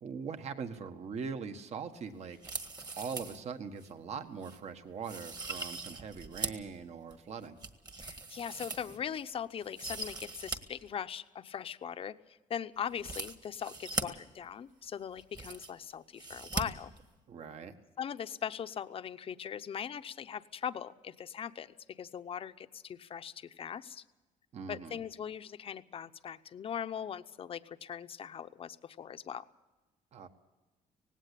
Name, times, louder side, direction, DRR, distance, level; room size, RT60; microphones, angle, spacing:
voice 1, 0.0-2.4 2.9-7.6 17.3-17.7 24.5-25.0 30.1-30.3, right 6 dB, 50° right, 8 dB, 1.6 m, -41 dB
sound 1, 2.3-3.4 3.8-3.9 4.4-4.6 5.0-6.7 7.1-9.2 9.6-10.6 10.9-11.0 12.9-14.0 14.8-14.9 15.1-15.8 16.2-16.6 16.9-17.0, right 3 dB, 30° right, 1.7 m, -40 dB
voice 2, 7.9-16.9 18.0-24.0 24.7-29.4, left 8 dB, 40° left, 11 dB, 0.8 m, -40 dB
18.5 x 17.0 x 8.6 m, 1.1 s
cardioid pair, 120°, 14 cm